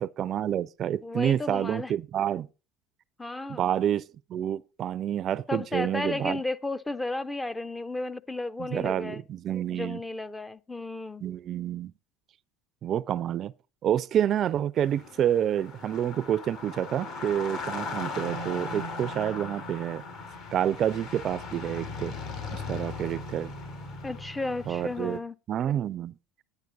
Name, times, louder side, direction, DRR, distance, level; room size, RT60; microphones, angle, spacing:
voice 1, 0.0-2.5 3.5-4.0 4.3-6.4 8.7-10.0 11.2-11.9 12.8-13.5 13.8-20.0 20.5-22.2 22.5-23.5 24.7-25.2 25.5-26.1, right 10 dB, 45° right, 0.4 m, -28 dB
voice 2, 1.0-1.9 3.2-3.7 5.5-9.2 9.7-11.2 24.0-25.3, left 2 dB, 15° left, 0.5 m, -33 dB
sound 1, 14.8-25.2, left 3 dB, 65° left, 4.5 m, -38 dB
10.5 x 9.3 x 3.8 m
hypercardioid pair, 85°, 0 cm